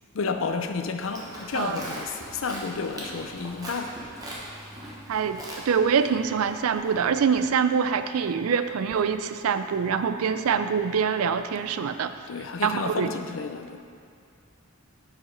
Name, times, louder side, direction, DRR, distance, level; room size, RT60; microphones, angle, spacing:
voice 1, 0.1-4.0 12.3-13.8, left 4 dB, 65° left, 7 dB, 0.5 m, -31 dB
Livestock farm animals working animals, 0.9-7.4, right 1 dB, 15° right, 1.1 m, -41 dB
voice 2, 5.1-5.4 5.7-12.1 12.6-13.1, right 6 dB, 85° right, 10 dB, 0.4 m, -24 dB
7.0 x 4.9 x 5.1 m, 2.2 s
head